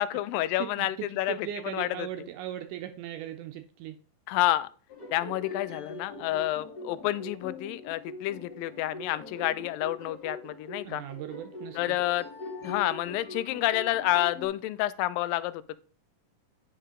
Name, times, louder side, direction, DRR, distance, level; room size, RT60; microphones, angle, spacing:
voice 1, 0.0-2.1 4.3-4.7 5.1-11.0 11.8-12.3 12.6-15.8, left 15 dB, 85° left, 2.2 m, -29 dB
voice 2, 0.6-4.0 10.8-12.0, right 11 dB, 80° right, 1.9 m, -38 dB
sound 1, 4.9-14.5, left 2 dB, 35° left, 1.8 m, -42 dB
9.7 x 5.6 x 3.7 m
omnidirectional pair, 4.0 m